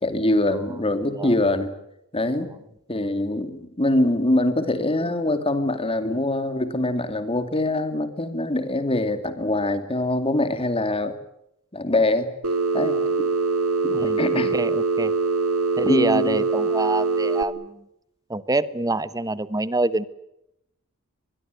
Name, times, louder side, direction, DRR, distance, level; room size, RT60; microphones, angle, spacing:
voice 1, 0.0-1.7 2.1-2.5 2.9-11.1 11.7-12.3 12.7-13.3 13.8-14.5 15.8-16.4, left 1 dB, 25° left, 9 dB, 2.5 m, -24 dB
Telephone, 12.4-17.4, right 4 dB, 65° right, 2.2 m, -23 dB
voice 2, 13.9-15.1 15.8-17.8 18.3-20.0, right 2 dB, 15° right, 15 dB, 1.0 m, -26 dB
24.5 x 21.5 x 9.3 m, 0.81 s
head